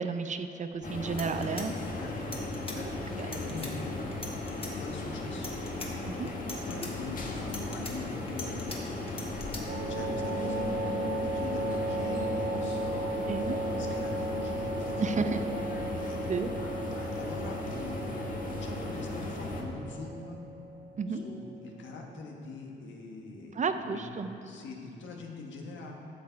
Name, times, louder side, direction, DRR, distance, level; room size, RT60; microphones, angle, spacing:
voice 1, 0.0-1.7 3.2-3.3 6.1-6.3 13.3-13.6 15.0-15.4 16.3-16.5 21.0-21.2 23.5-24.3, right 5 dB, 40° right, 8 dB, 0.6 m, -32 dB
sound 1, 0.7-0.8 1.1-2.8 3.2-3.7 4.1-4.7 5.3-5.9 6.3-6.9 7.4-8.8 9.1-9.6, left 2 dB, 25° left, 1.7 m, -41 dB
sound 2, 0.8-19.6, left 2 dB, 45° left, 1.5 m, -36 dB
voice 2, 1.9-2.3 2.7-4.0 4.8-5.6 6.5-15.1 16.0-16.2 16.5-20.4 21.1-24.1 24.5-25.9, left 3 dB, 70° left, 1 dB, 1.5 m, -44 dB
sound 3, 9.7-21.2, right 2 dB, 75° right, 1.6 m, -35 dB
11.5 x 7.0 x 4.7 m, 2.9 s
cardioid pair, 90°, 20 cm